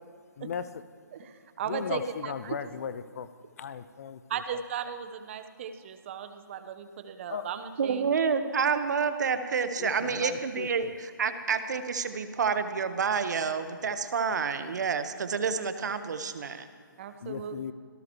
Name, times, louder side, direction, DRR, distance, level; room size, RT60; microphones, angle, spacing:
voice 1, 1.1-2.7 4.3-8.1 17.0-17.6, right 7 dB, 35° right, 9 dB, 1.2 m, -37 dB
voice 2, 1.7-3.3 3.6-4.2 7.3-7.4 9.8-10.9 17.2-17.7, left 7 dB, 45° left, 14 dB, 0.7 m, -37 dB
voice 3, 7.8-16.7, right 6 dB, 55° right, 9 dB, 1.4 m, -29 dB
26.0 x 17.5 x 3.2 m, 2.1 s
figure-of-eight pair, 145°, 11 cm